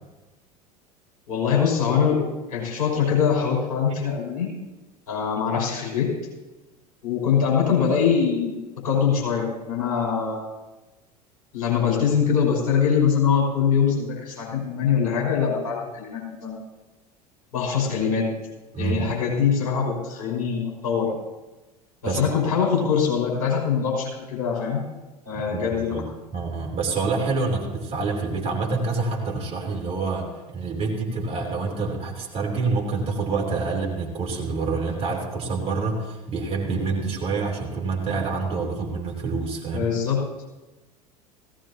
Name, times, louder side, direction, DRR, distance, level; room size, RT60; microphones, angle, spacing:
voice 1, 1.3-2.2 2.5-4.5 5.1-6.1 7.0-8.5 8.8-10.4 11.5-16.6 17.5-18.3 18.8-21.1 22.0-24.8 25.3-26.0 39.7-40.2, left 7 dB, 60° left, -3 dB, 5.7 m, -23 dB
voice 2, 18.7-19.1 22.0-22.2 25.5-26.1 26.3-39.9, right 4 dB, 30° right, 0 dB, 3.2 m, -27 dB
17.5 x 17.0 x 2.9 m, 1.1 s
figure-of-eight pair, 75°, 20 cm